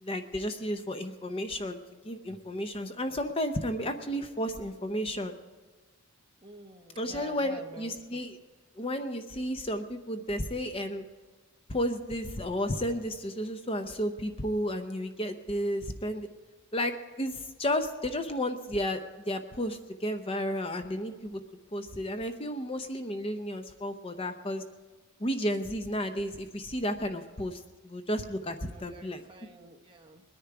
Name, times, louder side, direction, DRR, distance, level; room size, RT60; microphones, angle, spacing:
voice 1, 0.0-1.8 2.0-5.4 7.0-8.4 8.8-11.0 11.7-16.3 16.7-21.4 21.7-24.6 25.2-29.2, equal, 25° left, 7 dB, 0.6 m, -32 dB
voice 2, 6.4-8.2 28.7-30.2, right 3 dB, 20° right, 2 dB, 1.0 m, -49 dB
20.5 x 10.5 x 4.8 m, 1.4 s
head